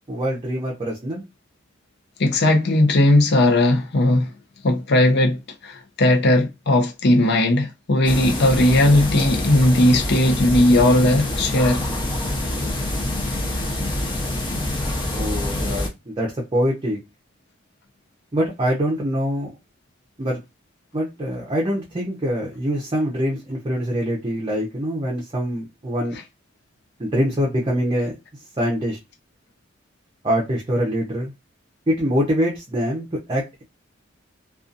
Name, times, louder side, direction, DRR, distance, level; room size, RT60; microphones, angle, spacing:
voice 1, 0.1-1.2 15.1-17.0 18.3-19.5 20.2-20.4 20.9-26.2 27.0-28.1 28.6-29.0 30.2-31.3 31.9-33.6, equal, 25° right, 0.6 m, -24 dB
voice 2, 2.2-4.3 4.6-5.4 5.6-11.8, left 1 dB, 60° left, 0.6 m, -17 dB
sound 1, 8.0-15.9, left 1 dB, 25° left, 0.8 m, -26 dB
2.6 x 2.4 x 2.5 m
head